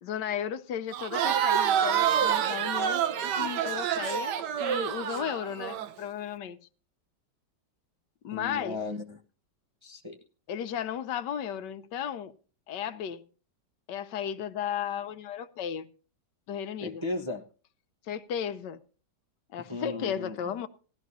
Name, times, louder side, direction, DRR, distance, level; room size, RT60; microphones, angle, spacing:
voice 1, 0.0-6.6 8.2-8.8 10.5-12.3 12.7-13.2 13.9-15.9 16.5-17.0 18.1-18.8 19.5-20.7, left 9 dB, 80° left, 1.3 m, -34 dB
Crowd, 0.9-5.9, right 9 dB, 75° right, 1.4 m, -27 dB
voice 2, 8.3-9.2 9.8-10.2 16.8-17.4 19.7-20.5, left 2 dB, 25° right, 0.6 m, -36 dB
17.5 x 12.5 x 2.7 m
omnidirectional pair, 1.9 m